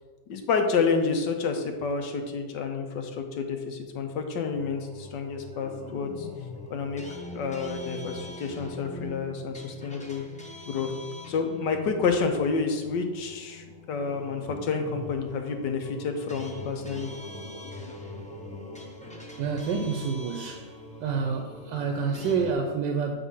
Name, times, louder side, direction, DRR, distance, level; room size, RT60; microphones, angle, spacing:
voice 1, 0.3-6.3 6.7-7.0 7.3-10.2 10.7-10.9 11.3-17.1 17.8-17.9, left 5 dB, 75° left, 5 dB, 1.5 m, -29 dB
sound 1, 4.4-22.5, left 1 dB, 10° left, 0.4 m, -43 dB
voice 2, 19.4-20.7 21.0-23.3, right 5 dB, 80° right, 4 dB, 1.3 m, -28 dB
8.2 x 3.6 x 5.4 m, 1.4 s
omnidirectional pair, 1.9 m